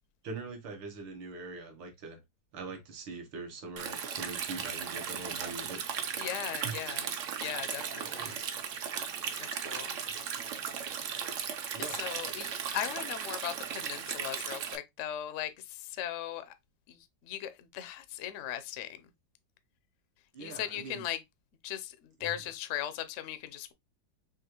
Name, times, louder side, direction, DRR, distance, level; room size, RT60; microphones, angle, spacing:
voice 1, 0.2-2.2 2.5-6.2 6.6-6.9 8.0-8.3 10.1-10.2 11.7-12.0 20.3-21.0 22.2-22.3, right 4 dB, 80° right, 2.0 m, -43 dB
Stream, 3.8-14.8, right 7 dB, 65° right, 0.7 m, -36 dB
voice 2, 6.2-7.1 7.4-8.4 9.4-10.4 11.8-16.5 16.9-19.1 20.4-21.2 21.6-23.7, left 11 dB, 70° left, 0.7 m, -38 dB
6.3 x 2.5 x 2.9 m
omnidirectional pair, 2.0 m